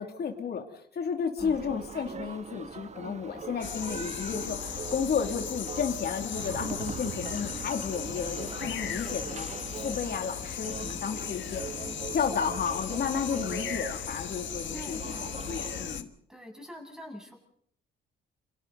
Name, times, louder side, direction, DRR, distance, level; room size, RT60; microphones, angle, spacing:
voice 1, 0.0-9.5 9.8-11.6 12.1-15.0 15.5-16.1, left 6 dB, 55° left, 4 dB, 2.6 m, -32 dB
voice 2, 1.4-1.8 8.9-9.4 14.7-15.3 16.3-17.4, equal, 5° right, 1 dB, 7.4 m, -45 dB
sound 1, 1.4-16.0, right 5 dB, 35° right, 1.2 m, -41 dB
sound 2, 3.6-16.0, left 10 dB, 70° left, 1.4 m, -37 dB
sound 3, 6.2-8.4, right 7 dB, 90° right, 2.1 m, -44 dB
28.5 x 24.5 x 4.0 m, 0.65 s
cardioid pair, 90°, 20 cm